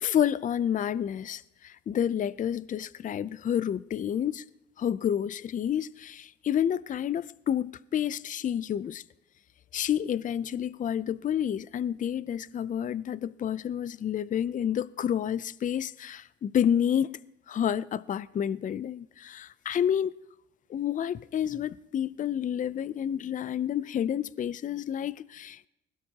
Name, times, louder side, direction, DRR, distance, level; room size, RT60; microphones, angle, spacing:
voice 1, 0.0-4.4 4.8-9.0 9.7-17.2 17.5-20.1 20.7-25.7, left 9 dB, 40° left, 0.4 m, -29 dB
20.5 x 17.0 x 2.8 m
cardioid pair, 90°, 20 cm